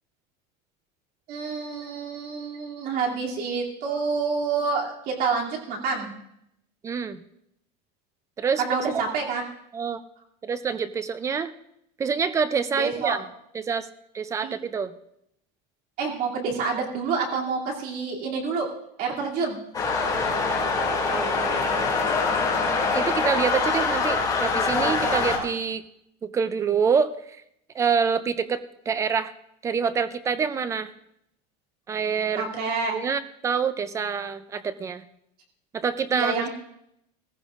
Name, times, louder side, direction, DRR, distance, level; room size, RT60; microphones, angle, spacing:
voice 1, 1.3-6.1 8.6-9.4 12.7-13.2 14.4-14.5 16.0-18.7 19.0-19.6 32.3-33.0 36.1-36.5, right 5 dB, 45° right, -1 dB, 2.7 m, -28 dB
voice 2, 6.8-7.2 8.4-8.6 8.9-9.0 9.7-10.0 10.4-11.5 12.0-13.2 13.5-13.9 14.1-14.9 21.1-22.0 22.9-25.8 26.2-27.1 27.7-29.3 29.6-30.9 31.9-32.5 32.9-35.0 35.7-36.5, right 6 dB, 15° right, 13 dB, 0.4 m, -26 dB
sound 1, 19.7-25.4, left 4 dB, 15° left, 2.4 m, -24 dB
18.5 x 15.0 x 2.5 m, 0.77 s
supercardioid pair, 160°, 21 cm